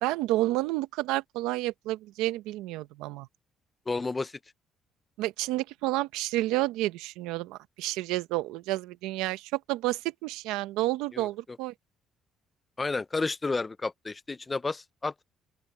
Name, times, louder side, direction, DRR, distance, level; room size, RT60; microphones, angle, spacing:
voice 1, 0.0-3.3 5.2-11.7, right 17 dB, 90° right, 0.9 m, -30 dB
voice 2, 3.9-4.3 11.1-11.3 12.8-15.1, left 3 dB, 25° left, 0.7 m, -31 dB
open air
cardioid pair, 85°, 0 cm